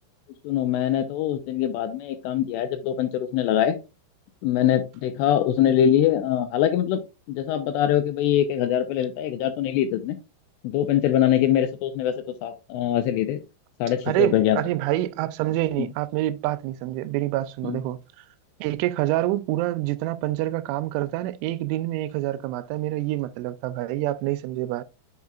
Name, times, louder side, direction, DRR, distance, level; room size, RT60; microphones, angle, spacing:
voice 1, 0.4-3.8 4.4-7.0 7.3-10.2 10.6-13.4 13.8-14.6 17.7-17.8, left 10 dB, 80° left, 2.6 m, -23 dB
voice 2, 14.1-18.0 18.6-24.8, right 16 dB, 90° right, 3.0 m, -26 dB
9.4 x 4.4 x 2.4 m
omnidirectional pair, 5.4 m